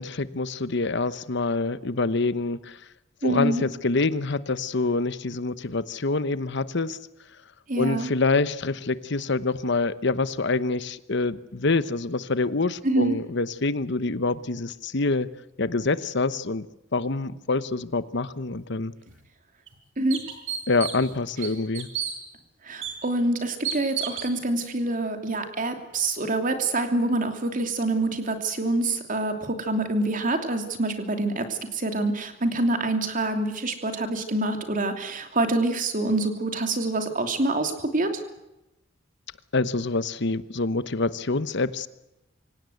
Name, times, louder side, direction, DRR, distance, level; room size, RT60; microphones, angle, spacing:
voice 1, 0.0-2.8 3.2-7.0 7.8-15.3 15.6-16.6 16.9-18.9 20.7-21.9 39.5-41.9, left 3 dB, 65° left, 15 dB, 1.0 m, -26 dB
voice 2, 3.2-3.6 7.7-8.1 12.8-13.2 20.0-20.2 22.6-38.2, right 2 dB, 45° right, 6 dB, 3.0 m, -26 dB
sound 1, 19.1-19.2 19.7-19.8 20.1-21.1 21.4-22.1 22.8-22.9 23.6-24.3, right 9 dB, 80° right, 5.0 m, -31 dB
26.0 x 17.0 x 8.0 m, 0.93 s
head